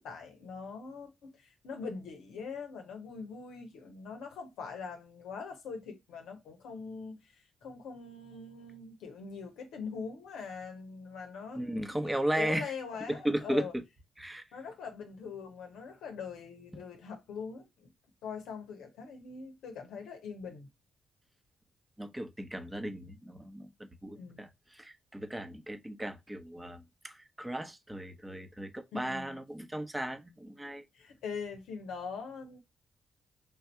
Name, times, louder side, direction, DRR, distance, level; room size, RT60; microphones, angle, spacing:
voice 1, 0.0-13.7 14.5-17.9 18.2-20.7 24.2-24.5 28.9-29.4 30.9-32.6, left 5 dB, 75° left, 0.8 m, -42 dB
voice 2, 11.5-12.7 13.1-13.8 14.2-14.4 22.0-23.7 24.0-30.8, right 1 dB, 15° right, 1.0 m, -36 dB
3.6 x 2.6 x 4.4 m
hypercardioid pair, 45°, 0 cm